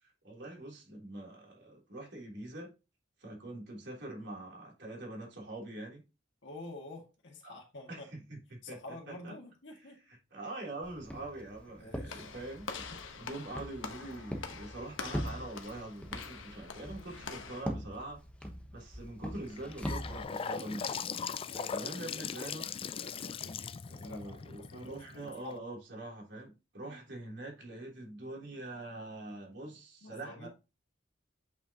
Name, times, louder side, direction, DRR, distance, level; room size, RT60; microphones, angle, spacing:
voice 1, 0.0-2.7 3.2-6.0 7.4-7.6 7.9-8.8 9.1-9.3 9.7-18.2 18.7-21.0 21.7-22.7 23.9-30.5, right 2 dB, 60° right, 3.3 m, -44 dB
voice 2, 6.4-8.1 8.6-10.0 11.8-12.3 21.4-24.4 24.7-25.6 26.8-27.0 30.0-30.5, left 2 dB, 65° left, 2.0 m, -49 dB
Walk footsteps, 10.8-20.2, equal, 5° left, 1.0 m, -42 dB
Walk footsteps / Slam, 12.1-17.6, left 5 dB, 80° left, 1.1 m, -45 dB
Gurgling / Sink (filling or washing) / Bathtub (filling or washing), 19.4-25.5, left 6 dB, 30° left, 0.3 m, -39 dB
8.3 x 5.2 x 2.9 m
head